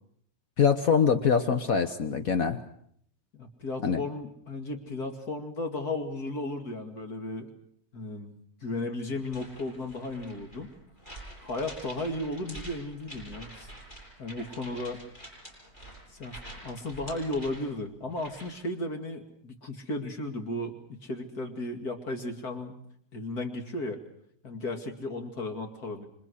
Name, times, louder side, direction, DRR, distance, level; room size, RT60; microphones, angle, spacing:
voice 1, 0.6-2.6 3.8-4.0, left 6 dB, 65° left, 8 dB, 1.7 m, -24 dB
voice 2, 3.3-7.5 7.9-8.3 8.6-10.7 11.4-13.7 14.2-15.0 16.1-16.4 16.6-22.8 23.1-24.0 24.4-26.1, left 2 dB, 80° left, 4 dB, 2.9 m, -35 dB
sound 1, 9.1-18.7, right 1 dB, 30° left, 8.3 m, -47 dB
27.0 x 26.0 x 6.5 m, 0.67 s
omnidirectional pair, 1.6 m